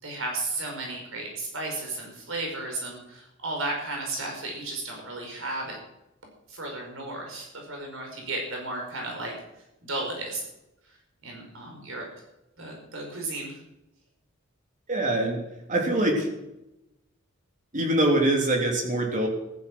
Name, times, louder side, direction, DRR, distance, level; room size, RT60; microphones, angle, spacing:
voice 1, 0.0-5.8 6.5-9.3 9.8-10.4 11.2-12.1 12.6-13.6, right 2 dB, 75° right, 1 dB, 5.0 m, -34 dB
voice 2, 14.9-15.4 15.7-16.3 17.7-19.3, right 1 dB, 40° right, 1 dB, 3.5 m, -23 dB
15.0 x 13.0 x 6.1 m, 0.91 s
head